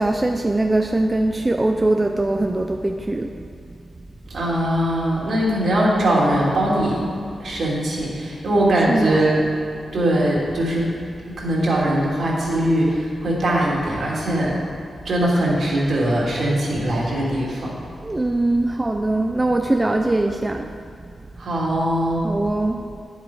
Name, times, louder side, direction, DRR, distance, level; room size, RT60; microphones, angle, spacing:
voice 1, 0.0-3.4 8.8-9.3 18.0-20.8 22.2-22.8, right 2 dB, 20° right, 4 dB, 0.5 m, -21 dB
voice 2, 4.3-7.0 7.4-9.4 9.9-10.9 11.2-12.9 13.2-14.5 15.0-17.7 21.4-22.2, right 1 dB, 65° right, -5 dB, 2.8 m, -21 dB
10.0 x 8.3 x 4.7 m, 2.4 s
cardioid pair, 85°, 0 cm